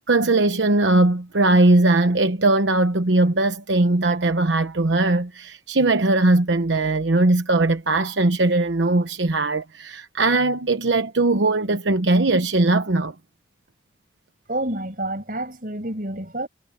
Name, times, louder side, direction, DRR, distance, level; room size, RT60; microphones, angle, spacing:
voice 1, 0.1-13.1, right 2 dB, 85° right, 1.0 m, -19 dB
voice 2, 14.5-16.5, right 1 dB, 50° right, 6.5 m, -28 dB
head